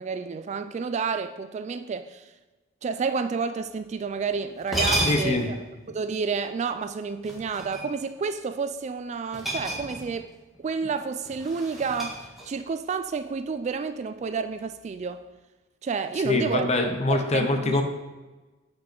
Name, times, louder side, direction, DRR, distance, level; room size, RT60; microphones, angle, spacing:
voice 1, 0.0-2.3 2.8-10.3 10.6-15.2 15.8-16.7 17.1-17.8, right 5 dB, 35° right, 10 dB, 0.3 m, -30 dB
sound 1, 4.2-4.3 4.6-5.5 7.2-8.1 9.3-10.3 10.5-10.8 11.2-12.7, right 1 dB, ahead, 1.5 m, -30 dB
voice 2, 5.0-5.5 16.2-17.8, left 2 dB, 35° left, 5 dB, 0.8 m, -24 dB
7.8 x 5.3 x 4.4 m, 1.2 s
head